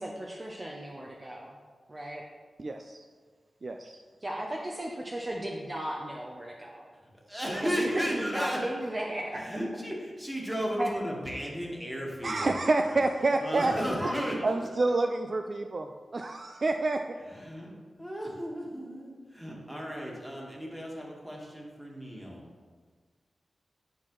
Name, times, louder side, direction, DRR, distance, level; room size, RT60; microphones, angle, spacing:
voice 1, 0.0-1.6 1.9-2.2 4.2-6.9 7.5-9.5 10.8-10.9, right 1 dB, 35° right, -1 dB, 0.7 m, -35 dB
voice 2, 2.6-3.0 3.6-4.0 12.2-13.7 14.4-17.0, right 2 dB, 50° right, 5 dB, 0.3 m, -28 dB
voice 3, 7.3-8.8 9.3-13.0 13.4-14.5 14.9-15.1 17.3-22.5, equal, 10° right, -2 dB, 1.7 m, -34 dB
9.3 x 4.2 x 3.1 m, 1.5 s
cardioid pair, 65°, 0 cm